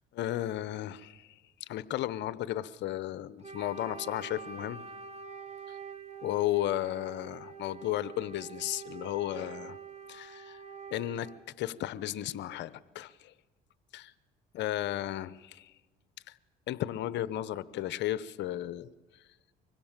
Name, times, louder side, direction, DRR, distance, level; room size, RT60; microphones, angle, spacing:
voice 1, 0.1-4.8 5.7-5.8 6.2-9.8 10.1-10.6 10.9-11.3 11.6-13.3 13.9-14.1 14.5-15.7 16.3-16.4 16.7-19.2, left 13 dB, 70° left, 17 dB, 0.9 m, -34 dB
Wind instrument woodwind instrument, 3.4-11.4, right 6 dB, 35° right, 3.2 m, -46 dB
25.0 x 22.0 x 7.4 m, 1.2 s
supercardioid pair, 80°, 19 cm